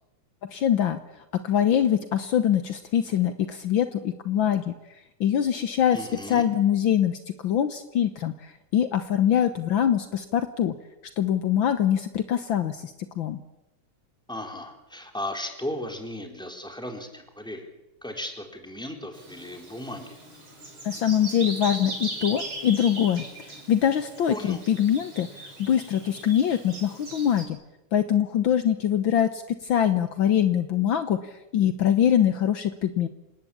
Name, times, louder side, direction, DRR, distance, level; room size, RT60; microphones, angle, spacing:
voice 1, 0.5-1.0 1.4-4.7 5.2-6.0 6.3-10.7 11.2-13.4 20.8-27.6 27.9-33.1, left 9 dB, 65° left, 10 dB, 1.7 m, -24 dB
voice 2, 5.9-6.4 14.3-17.7 18.0-20.2 24.3-24.6, left 1 dB, ahead, 3 dB, 3.7 m, -36 dB
Bird vocalization bird call bird song, 19.1-27.4, right 2 dB, 75° right, 6.7 m, -39 dB
27.0 x 19.0 x 8.6 m, 0.92 s
omnidirectional pair, 2.4 m